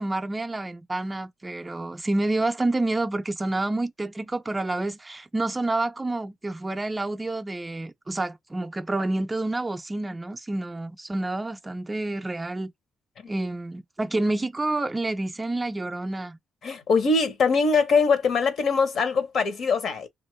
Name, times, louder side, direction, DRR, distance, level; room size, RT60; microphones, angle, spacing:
voice 1, 0.0-12.7 13.3-16.4, right 2 dB, 20° right, 0.4 m, -28 dB
voice 2, 16.6-20.1, left 4 dB, 60° left, 0.8 m, -22 dB
3.0 x 2.3 x 3.0 m
cardioid pair, 90°, 0 cm